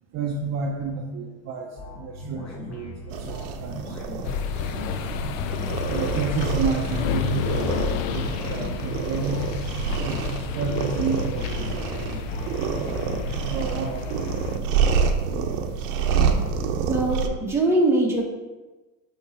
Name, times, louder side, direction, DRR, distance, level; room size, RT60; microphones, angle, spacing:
voice 1, 0.1-1.7 2.0-4.0 5.9-9.4 10.0-12.2 13.5-14.2 16.1-16.5, right 5 dB, 45° right, 1 dB, 0.7 m, -30 dB
sound 1, 1.8-14.0, left 1 dB, 40° left, 1.4 m, -39 dB
sound 2, 3.1-17.3, right 6 dB, 75° right, 0.8 m, -28 dB
sound 3, 4.2-14.6, left 8 dB, 90° left, 0.5 m, -31 dB
voice 2, 16.9-18.2, right 2 dB, 5° right, -3 dB, 1.3 m, -22 dB
8.1 x 3.3 x 4.3 m, 1.2 s
supercardioid pair, 120°, 39 cm